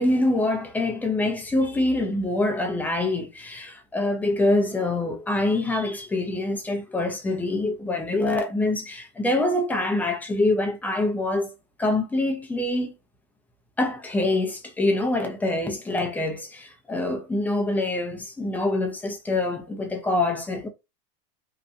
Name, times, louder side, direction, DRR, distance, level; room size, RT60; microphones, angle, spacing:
voice 1, 0.0-11.5 11.8-12.9 13.8-20.7, left 2 dB, 5° left, 0.5 m, -25 dB
2.8 x 2.2 x 2.5 m
supercardioid pair, 135°, 29 cm